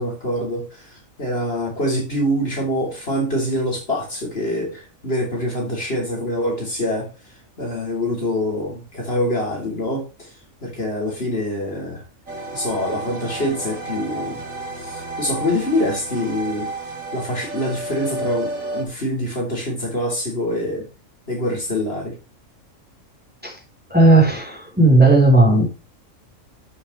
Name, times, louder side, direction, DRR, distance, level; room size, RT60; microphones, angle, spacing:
voice 1, 0.0-7.1 7.6-10.3 10.6-12.0 12.5-14.4 14.8-16.7 17.1-20.9 21.3-22.2, left 1 dB, 45° left, 3.7 m, -25 dB
sound 1, 12.3-18.8, right 2 dB, 85° right, 3.4 m, -31 dB
voice 2, 23.9-25.7, right 2 dB, 5° right, 3.9 m, -14 dB
12.5 x 7.2 x 3.3 m
omnidirectional pair, 1.4 m